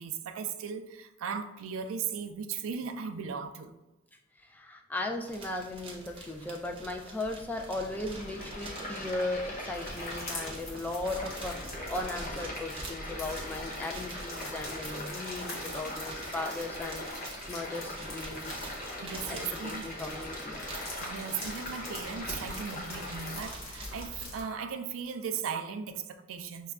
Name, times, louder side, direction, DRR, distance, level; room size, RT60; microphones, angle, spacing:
voice 1, 0.0-3.7 19.0-19.9 21.0-26.7, right 6 dB, 80° right, 8 dB, 0.4 m, -37 dB
voice 2, 4.5-17.1 17.5-18.7 19.3-19.4 19.6-20.7, left 2 dB, 10° left, 3 dB, 0.3 m, -37 dB
sound 1, 5.3-24.3, right 1 dB, 25° right, 0.7 m, -46 dB
sound 2, 7.9-23.4, left 1 dB, 45° left, 0.8 m, -41 dB
sound 3, 9.6-24.4, left 1 dB, 85° left, 1.3 m, -45 dB
5.9 x 2.2 x 2.3 m, 1.0 s
head